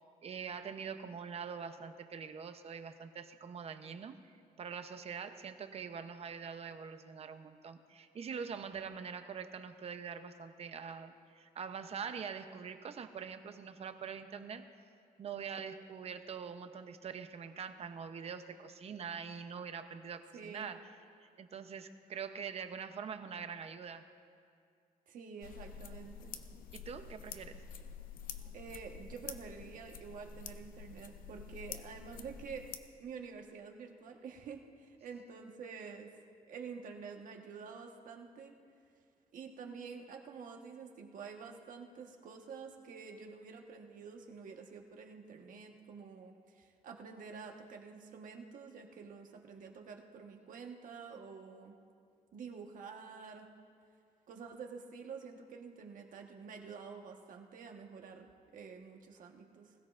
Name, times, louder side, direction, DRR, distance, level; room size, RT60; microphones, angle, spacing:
voice 1, 0.2-4.2 4.6-14.6 15.2-20.8 21.4-24.0 26.7-27.6, right 6 dB, 45° right, 9 dB, 0.8 m, -44 dB
voice 2, 20.3-20.7 25.1-26.4 28.5-32.7 33.0-36.1 36.5-38.5 39.3-51.7 52.3-53.5 54.3-59.7, right 5 dB, 65° right, 2 dB, 1.4 m, -48 dB
sound 1, 25.4-32.8, left 7 dB, 75° left, 0.7 m, -48 dB
20.5 x 16.0 x 2.5 m, 2.3 s
cardioid pair, 135°, 15 cm